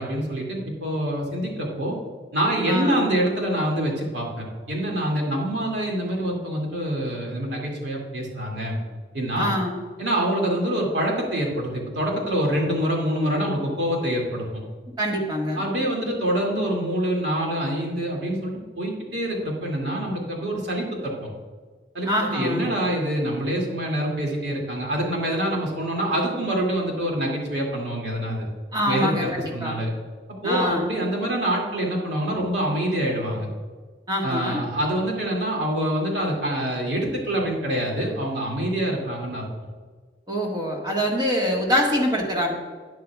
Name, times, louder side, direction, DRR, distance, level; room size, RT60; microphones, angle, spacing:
voice 1, 0.0-2.0 2.3-8.8 9.1-9.5 10.0-14.6 15.6-21.3 21.9-28.5 28.8-29.9 30.4-33.5 34.2-39.5, right 1 dB, 75° right, -1 dB, 2.5 m, -26 dB
voice 2, 2.7-3.0 9.3-9.8 15.0-15.6 22.0-22.6 28.7-29.8 30.4-30.9 34.1-34.6 40.3-42.5, equal, 25° right, -1 dB, 1.6 m, -24 dB
12.5 x 9.4 x 2.4 m, 1.5 s
head